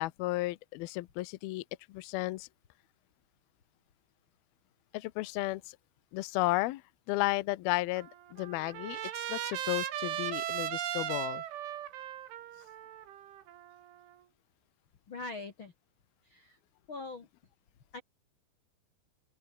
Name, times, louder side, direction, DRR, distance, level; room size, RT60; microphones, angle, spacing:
voice 1, 0.0-1.6 1.9-2.5 4.9-5.6 6.1-6.8 7.1-11.4, left 19 dB, 80° left, 2.2 m, -33 dB
Trumpet, 8.0-14.1, right 12 dB, 85° right, 4.5 m, -38 dB
voice 2, 15.1-15.7 16.3-16.6 16.9-17.3 17.9-18.0, left 3 dB, 55° left, 1.4 m, -42 dB
open air
omnidirectional pair, 5.3 m